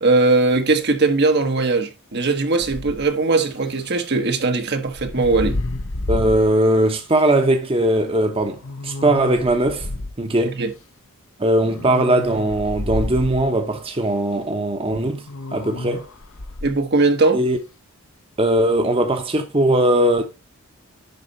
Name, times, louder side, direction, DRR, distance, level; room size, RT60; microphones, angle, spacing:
voice 1, 0.0-5.6 10.6-10.7 16.6-17.4, right 3 dB, 50° right, 1.1 m, -19 dB
sound 1, 2.6-3.1 4.9-6.5 7.2-7.3 8.6-10.1 11.6-13.5 15.3-16.7, left 2 dB, 60° left, 0.9 m, -30 dB
voice 2, 6.1-9.9 10.2-10.6 11.4-16.1 17.3-17.6 18.4-20.2, right 1 dB, 25° right, 1.0 m, -19 dB
11.0 x 4.4 x 4.1 m
head